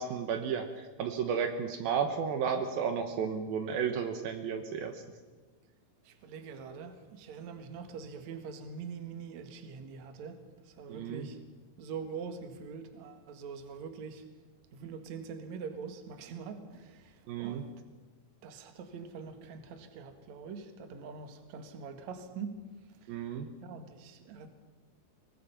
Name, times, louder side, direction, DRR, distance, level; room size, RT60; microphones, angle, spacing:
voice 1, 0.0-5.0 10.9-11.3 17.3-17.6 23.1-23.5, right 7 dB, 75° right, 7 dB, 2.9 m, -33 dB
voice 2, 6.0-10.4 10.6-11.4 11.8-14.2 14.7-17.7 18.4-22.7 23.0-23.3 23.6-24.5, right 5 dB, 55° right, 7 dB, 2.7 m, -44 dB
23.5 x 19.5 x 5.7 m, 1.3 s
omnidirectional pair, 4.4 m